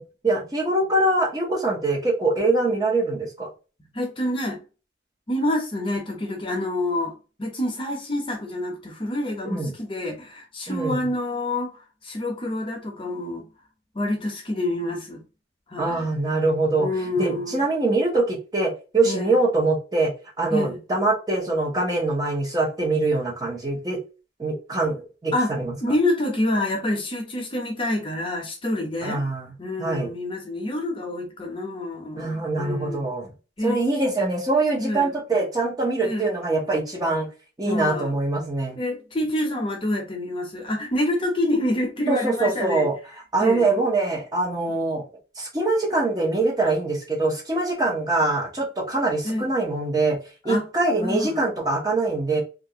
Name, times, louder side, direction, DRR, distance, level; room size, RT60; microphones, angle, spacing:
voice 1, 0.0-3.5 9.4-9.7 10.7-11.1 15.8-16.9 17.2-20.1 20.4-24.0 24.4-25.7 29.0-29.5 29.8-30.1 32.2-33.3 33.6-37.3 37.6-38.8 42.1-43.0 43.3-45.0 45.4-50.2 50.4-52.4, right 2 dB, 20° right, 0.7 m, -23 dB
voice 2, 3.9-4.6 5.3-7.1 7.4-13.4 13.9-15.2 15.7-16.1 16.8-17.6 19.0-19.3 20.5-20.8 25.3-25.5 25.8-29.2 29.6-33.0 33.6-33.8 34.8-35.1 36.0-36.3 37.7-38.1 38.8-42.9 43.4-43.7 49.2-49.5 50.5-50.6 51.0-51.4, left 1 dB, 30° left, 0.7 m, -27 dB
2.8 x 2.5 x 2.8 m
head